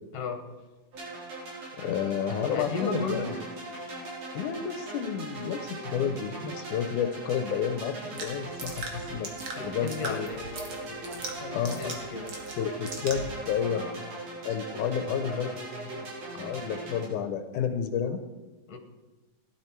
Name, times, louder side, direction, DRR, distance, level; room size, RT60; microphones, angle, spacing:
voice 1, 0.1-0.4 2.5-3.3 9.5-12.3 13.7-14.2 14.7-16.1 18.7-18.8, left 3 dB, 60° left, 5 dB, 2.5 m, -36 dB
sound 1, 0.9-17.1, right 2 dB, 75° right, 5.3 m, -40 dB
voice 2, 1.8-3.3 4.3-9.3 9.6-10.3 11.5-12.0 12.6-13.8 14.5-15.6 16.3-18.2, left 7 dB, 85° left, 8 dB, 2.2 m, -30 dB
sound 2, 8.2-13.4, right 3 dB, 45° right, 2.3 m, -40 dB
16.5 x 11.5 x 4.5 m, 1.2 s
omnidirectional pair, 3.5 m